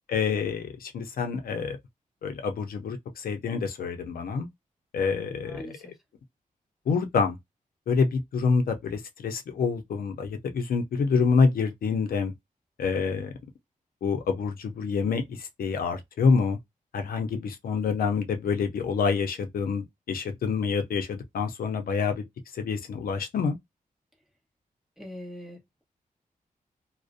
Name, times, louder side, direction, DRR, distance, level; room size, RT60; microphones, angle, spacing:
voice 1, 0.1-1.8 2.2-4.5 4.9-5.6 6.9-7.4 7.9-12.3 12.8-13.3 14.0-16.6 16.9-22.2 22.5-23.6, left 5 dB, 85° left, 0.5 m, -27 dB
voice 2, 5.1-5.9 25.0-25.8, equal, 5° right, 0.9 m, -43 dB
2.4 x 2.0 x 2.5 m
wide cardioid pair, 100°, 15 cm